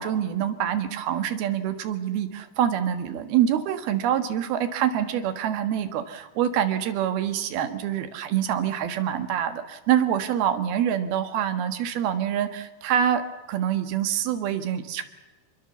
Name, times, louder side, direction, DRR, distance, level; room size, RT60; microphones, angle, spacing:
voice 1, 0.0-13.2 13.5-15.0, right 10 dB, 80° right, 9 dB, 3.4 m, -25 dB
27.0 x 22.0 x 7.1 m, 1.1 s
omnidirectional pair, 4.4 m